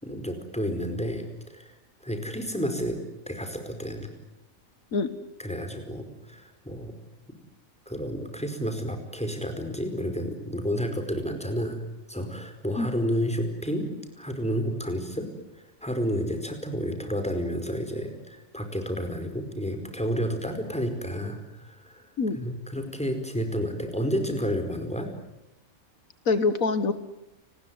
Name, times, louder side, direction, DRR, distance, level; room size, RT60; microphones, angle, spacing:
voice 1, 0.0-1.7 2.0-3.0 3.3-4.1 5.4-6.9 7.9-11.8 12.1-13.9 14.2-22.1 22.3-25.1, equal, 5° left, 6 dB, 4.8 m, -31 dB
voice 2, 26.3-26.9, left 4 dB, 75° left, 12 dB, 1.8 m, -24 dB
30.0 x 20.0 x 9.4 m, 0.90 s
omnidirectional pair, 1.4 m